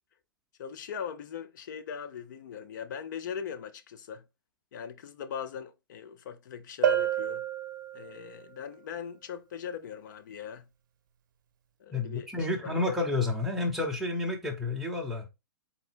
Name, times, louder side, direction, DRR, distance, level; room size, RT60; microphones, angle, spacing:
voice 1, 0.6-4.2 4.7-7.4 7.9-10.7 11.8-13.0, left 7 dB, 60° left, 0.7 m, -40 dB
Bell, 6.8-8.4, right 9 dB, 60° right, 0.6 m, -29 dB
voice 2, 11.9-15.3, left 3 dB, 5° right, 0.9 m, -30 dB
4.1 x 2.1 x 4.4 m
hypercardioid pair, 135°, 12 cm